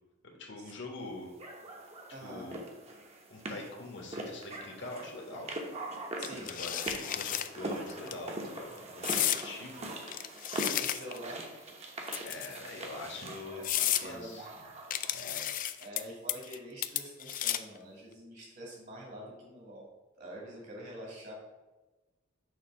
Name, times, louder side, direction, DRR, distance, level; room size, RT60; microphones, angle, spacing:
voice 1, 0.4-1.3 2.2-2.6 3.3-5.5 6.3-9.9 12.2-13.6 14.0-14.5 15.1-15.5, left 2 dB, 60° left, 1 dB, 1.3 m, -44 dB
sound 1, 1.4-15.5, right 1 dB, 30° right, 0.9 m, -42 dB
voice 2, 2.1-2.5 6.2-6.5 10.7-11.5 13.5-14.4 15.8-19.8 20.2-21.3, right 1 dB, 55° right, -3 dB, 1.8 m, -46 dB
sound 2, 6.2-7.5 7.9-8.1 9.0-9.4 10.1-11.3 12.1-12.7 13.2-13.3 13.6-14.1 14.9-16.0 16.3-16.6 16.8-17.8, left 12 dB, 40° left, 0.3 m, -32 dB
6.5 x 2.9 x 5.8 m, 1.1 s
head